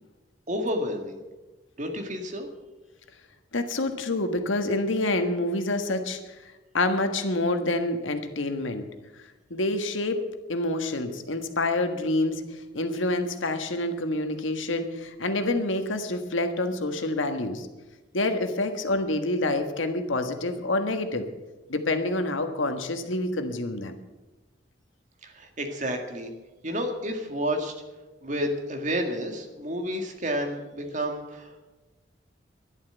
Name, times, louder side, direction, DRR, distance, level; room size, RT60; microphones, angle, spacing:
voice 1, 0.5-1.2 1.8-2.5 25.2-26.3 26.6-27.7 28.2-31.7, equal, 40° right, 4 dB, 2.0 m, -30 dB
voice 2, 3.5-6.3 6.7-8.9 9.5-10.2 10.5-17.7 18.1-21.2 21.7-23.9, left 2 dB, 90° left, 7 dB, 1.5 m, -27 dB
11.5 x 11.5 x 8.1 m, 1.1 s
head